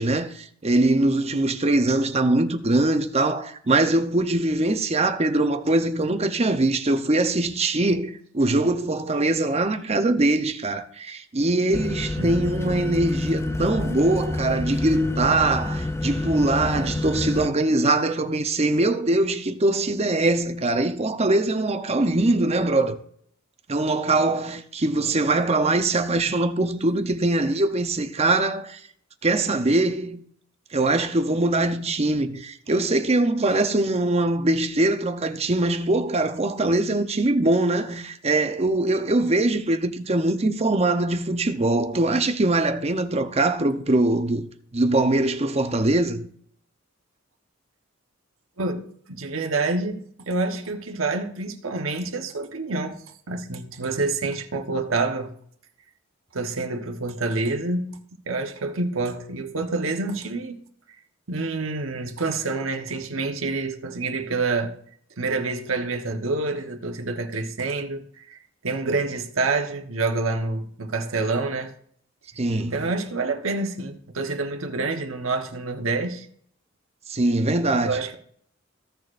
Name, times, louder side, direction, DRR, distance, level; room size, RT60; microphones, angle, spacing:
voice 1, 0.0-23.0 23.7-28.8 29.2-30.2 30.7-44.5 44.7-46.3 72.4-72.9 77.1-78.0, right 2 dB, 30° right, 0.8 m, -22 dB
sound 1, 11.7-17.5, left 2 dB, 15° left, 0.4 m, -28 dB
voice 2, 48.6-53.0 53.3-55.3 56.3-60.6 61.3-64.7 65.2-71.7 72.7-76.3 77.8-78.1, right 3 dB, 85° right, 1.2 m, -27 dB
16.0 x 6.4 x 2.6 m
head